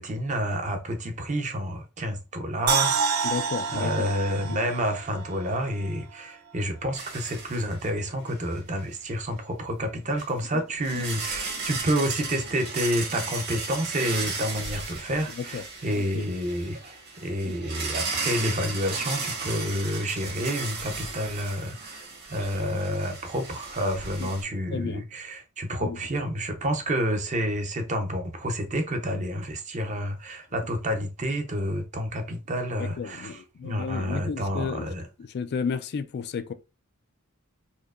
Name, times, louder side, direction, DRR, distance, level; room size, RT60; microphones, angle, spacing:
voice 1, 0.0-3.4 3.7-17.0 17.2-22.0 22.3-35.0, equal, 35° right, 0.7 m, -29 dB
sound 1, 2.7-5.9 6.2-6.3, right 6 dB, 80° right, 0.5 m, -28 dB
voice 2, 3.2-4.1 4.5-4.6 10.5-10.6 15.4-15.6 15.9-16.3 17.5-17.6 24.2-24.3 24.7-25.0 25.8-26.0 32.8-34.9 35.2-36.5, left 6 dB, 50° left, 0.3 m, -33 dB
sound 2, 6.9-8.0 8.3-8.5 10.2-10.3 10.8-24.4, right 4 dB, 50° right, 1.3 m, -35 dB
4.4 x 2.7 x 2.4 m
head